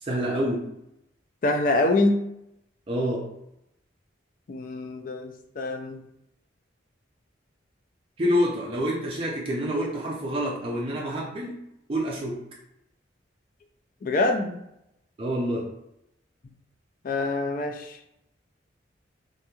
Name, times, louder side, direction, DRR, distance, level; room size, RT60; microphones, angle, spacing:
voice 1, 0.0-0.7 2.9-3.3 8.2-11.6 11.9-12.4 15.2-15.7, equal, 30° right, -3 dB, 0.4 m, -27 dB
voice 2, 1.4-2.2 4.5-6.0 14.0-14.6 17.0-18.0, left 2 dB, 45° left, 4 dB, 0.3 m, -25 dB
2.9 x 2.6 x 2.3 m, 0.81 s
head